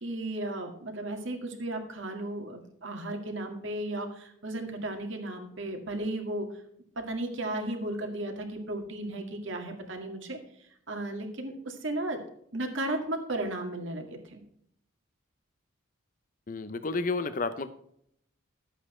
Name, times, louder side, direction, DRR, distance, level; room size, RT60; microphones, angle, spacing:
voice 1, 0.0-6.5 7.0-12.2 12.5-14.4, right 1 dB, 65° right, 3 dB, 2.0 m, -35 dB
voice 2, 16.5-17.7, left 3 dB, 40° left, 11 dB, 0.6 m, -31 dB
12.0 x 8.1 x 4.3 m, 0.69 s
head